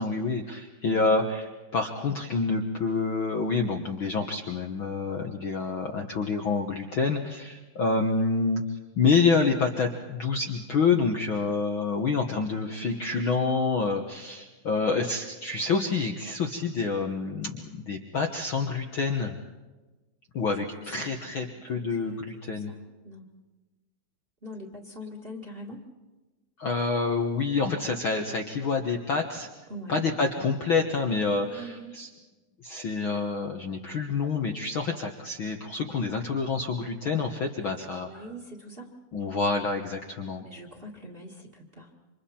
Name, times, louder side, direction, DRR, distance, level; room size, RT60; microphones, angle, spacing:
voice 1, 0.0-8.6 9.0-19.4 20.3-22.7 26.6-29.5 29.9-32.1 32.6-38.3 39.1-40.4, left 4 dB, 80° left, 3 dB, 1.1 m, -27 dB
voice 2, 0.9-1.3 12.8-13.0 20.7-22.2 22.7-22.8 23.0-23.3 24.4-25.8 29.7-30.0 31.3-31.9 37.6-38.9 40.4-41.9, equal, 20° right, 1 dB, 1.5 m, -43 dB
29.0 x 26.5 x 4.4 m, 1.2 s
omnidirectional pair, 4.2 m